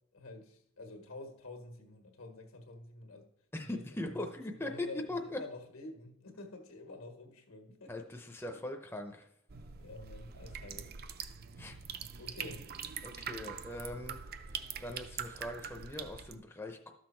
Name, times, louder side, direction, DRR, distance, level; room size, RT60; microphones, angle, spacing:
voice 1, 0.1-3.3 3.6-8.1 8.5-8.6 9.7-10.9 11.8-12.7, left 2 dB, 85° left, 1.6 m, -49 dB
voice 2, 3.5-5.2 7.9-9.3 11.6-11.8 13.0-14.2 14.8-16.9, left 1 dB, 10° left, 0.6 m, -40 dB
sound 1, 9.5-16.3, right 7 dB, 45° right, 0.5 m, -43 dB
12.5 x 6.3 x 4.4 m
head